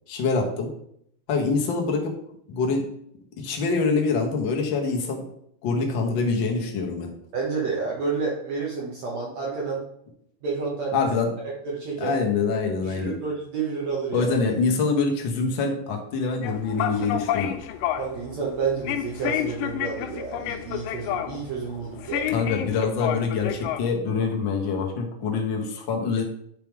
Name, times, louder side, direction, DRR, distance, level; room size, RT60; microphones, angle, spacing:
voice 1, 0.1-0.7 1.3-2.1 2.5-2.8 3.4-5.2 5.6-7.1 10.9-11.3 12.0-13.2 14.1-17.6 22.3-26.2, left 4 dB, 70° left, 1 dB, 1.1 m, -25 dB
voice 2, 7.3-9.8 10.4-11.1 11.6-12.2 12.8-14.4 18.0-22.3, right 5 dB, 65° right, -3 dB, 2.1 m, -30 dB
sound 1, 16.4-23.8, left 11 dB, 85° left, 2.2 m, -30 dB
9.2 x 3.5 x 4.6 m, 0.70 s
omnidirectional pair, 3.8 m